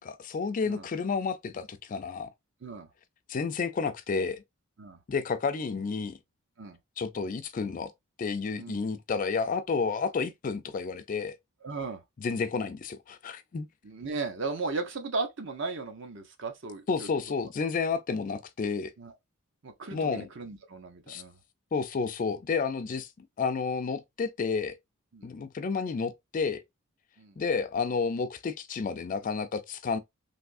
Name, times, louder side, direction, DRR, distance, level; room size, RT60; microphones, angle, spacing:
voice 1, 0.0-2.3 3.3-4.4 5.1-6.2 7.0-7.9 8.2-11.4 12.2-13.7 16.9-18.9 19.9-20.3 21.1-21.2 21.7-24.8 25.2-26.6 27.4-30.0, left 5 dB, 35° left, 0.3 m, -31 dB
voice 2, 11.6-12.0 13.8-17.1 19.0-19.1 19.6-21.4 25.1-25.3 27.2-27.4, right 3 dB, 55° right, 0.7 m, -36 dB
3.4 x 2.6 x 2.5 m
head